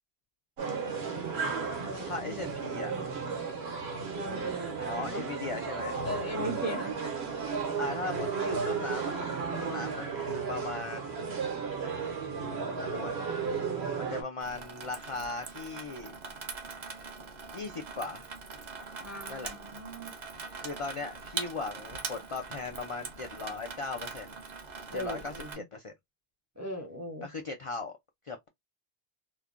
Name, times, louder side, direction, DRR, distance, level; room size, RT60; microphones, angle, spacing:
sound 1, 0.6-14.2, right 5 dB, 75° right, 1.0 m, -34 dB
voice 1, 0.9-1.3 1.8-2.5 2.8-3.3 4.1-5.3 6.0-7.5 19.0-20.1 24.9-25.6 26.6-27.3, equal, 25° right, 0.3 m, -39 dB
voice 2, 2.0-2.9 4.9-6.0 7.8-9.2 9.5-11.2 12.7-13.2 13.9-16.1 17.5-18.3 19.3-19.5 20.5-24.4 24.9-25.9 27.2-28.0 28.2-28.5, left 3 dB, 60° left, 0.3 m, -38 dB
Water tap faucet / Sink (filling or washing), 14.4-25.6, right 4 dB, 50° right, 0.7 m, -42 dB
3.1 x 2.1 x 2.4 m
omnidirectional pair, 1.1 m